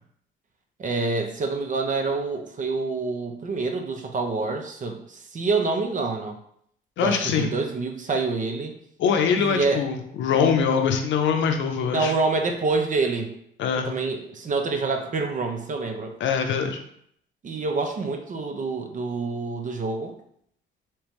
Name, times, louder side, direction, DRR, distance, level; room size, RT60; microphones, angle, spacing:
voice 1, 0.8-6.4 7.0-8.7 9.3-9.8 11.9-13.3 13.9-16.1 17.4-20.1, right 3 dB, 40° right, 4 dB, 0.6 m, -27 dB
voice 2, 7.0-7.5 9.0-12.1 13.6-13.9 16.2-16.8, left 6 dB, 70° left, 5 dB, 0.6 m, -23 dB
3.4 x 2.9 x 3.0 m, 0.69 s
cardioid pair, 90°, 20 cm